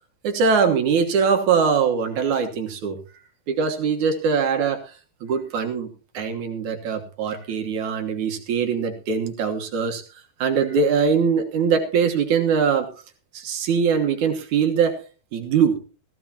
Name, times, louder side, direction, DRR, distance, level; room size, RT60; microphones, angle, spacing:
voice 1, 0.2-3.0 3.5-4.9 5.2-5.9 6.1-12.9 13.3-15.0 15.3-15.8, right 6 dB, 65° right, 4 dB, 2.5 m, -22 dB
16.0 x 15.5 x 2.9 m, 0.36 s
omnidirectional pair, 4.1 m